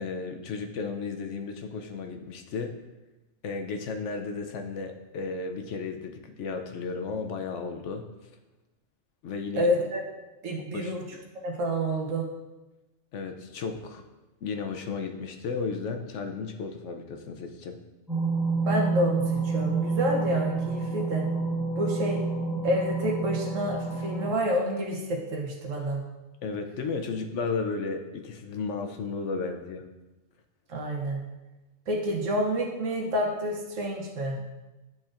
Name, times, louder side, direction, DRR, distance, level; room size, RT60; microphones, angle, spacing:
voice 1, 0.0-2.8 3.4-8.1 9.2-9.7 10.7-10.9 13.1-14.0 14.4-17.8 26.4-29.8, left 4 dB, 70° left, 5 dB, 0.9 m, -34 dB
voice 2, 9.6-10.0 10.4-11.0 11.4-12.3 18.6-21.3 21.8-22.2 22.6-26.0 30.7-31.2 31.9-34.4, equal, 85° right, 0 dB, 1.3 m, -28 dB
sound 1, 18.1-24.3, right 4 dB, ahead, 0.9 m, -28 dB
10.5 x 4.3 x 2.5 m, 1.1 s
omnidirectional pair, 1.3 m